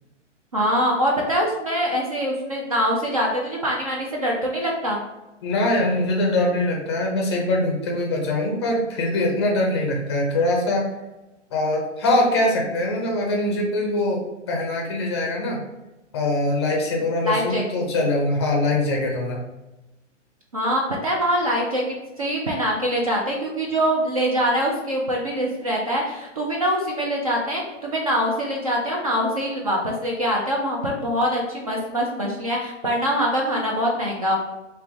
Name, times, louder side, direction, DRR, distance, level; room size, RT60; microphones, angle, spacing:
voice 1, 0.5-5.0 17.2-17.6 20.5-34.3, equal, 30° right, -2 dB, 0.4 m, -24 dB
voice 2, 5.4-10.9 11.5-15.6 16.1-19.4, left 1 dB, 20° left, 0 dB, 0.5 m, -23 dB
3.3 x 2.9 x 3.4 m, 1.0 s
hypercardioid pair, 160°, 37 cm